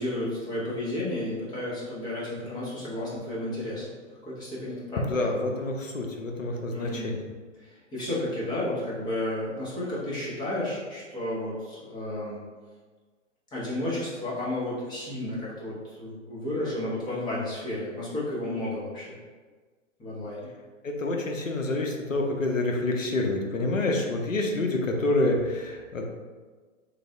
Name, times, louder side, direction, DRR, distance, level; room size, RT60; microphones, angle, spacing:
voice 1, 0.0-3.9 4.2-5.4 6.7-7.1 7.6-12.4 13.5-19.2 20.0-20.5, left 1 dB, 10° left, -8 dB, 0.8 m, -32 dB
voice 2, 5.1-7.2 20.8-26.0, left 2 dB, 80° left, 2 dB, 0.7 m, -27 dB
3.3 x 2.4 x 3.5 m, 1.4 s
figure-of-eight pair, 115°, 38 cm